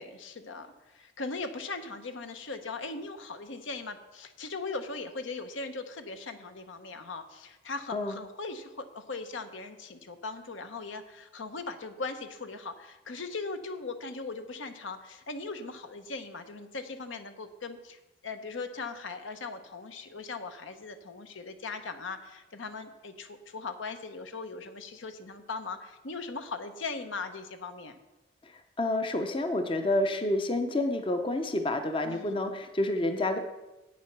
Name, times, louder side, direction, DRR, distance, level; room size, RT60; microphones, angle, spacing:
voice 1, 0.0-28.0 32.0-32.4, left 3 dB, 75° left, 8 dB, 0.9 m, -39 dB
voice 2, 28.4-33.4, left 1 dB, 25° left, 7 dB, 0.6 m, -29 dB
8.6 x 7.4 x 5.9 m, 1.0 s
head